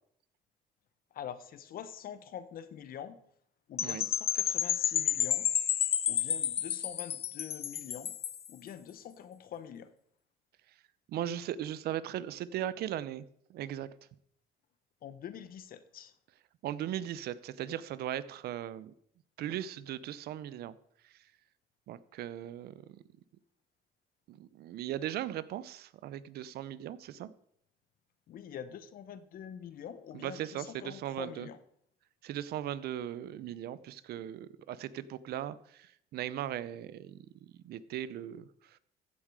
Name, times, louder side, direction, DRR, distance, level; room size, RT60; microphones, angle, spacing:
voice 1, 1.1-3.2 3.7-5.5 6.1-8.1 8.5-9.9 15.0-16.1 28.3-31.6, left 9 dB, 60° left, 13 dB, 1.1 m, -45 dB
Percussion / Wind chime, 3.8-8.5, left 9 dB, 35° left, 0.3 m, -31 dB
voice 2, 11.1-13.2 13.5-13.9 16.6-18.9 19.4-20.7 21.9-22.8 24.3-27.3 30.1-31.5 32.2-37.2 37.6-38.8, right 11 dB, 70° right, 17 dB, 0.7 m, -38 dB
15.0 x 7.5 x 4.8 m, 0.70 s
cardioid pair, 110°, 17 cm